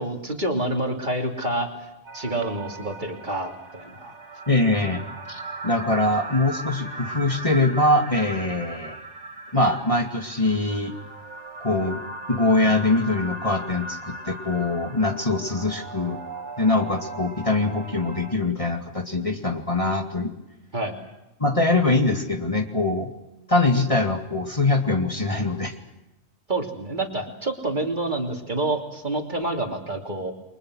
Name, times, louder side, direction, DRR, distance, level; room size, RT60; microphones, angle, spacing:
voice 1, 0.0-4.1 20.7-21.0 26.5-30.3, right 2 dB, 40° right, 3 dB, 3.3 m, -28 dB
sound 1, 2.0-18.3, right 2 dB, 70° right, 3.7 m, -38 dB
voice 2, 4.5-5.0 5.3-8.9 9.5-10.9 11.6-12.0 12.3-16.2 16.6-20.3 21.4-23.1 23.5-25.7, left 2 dB, 25° left, 3 dB, 2.4 m, -23 dB
30.0 x 24.0 x 6.4 m, 0.97 s
omnidirectional pair, 1.2 m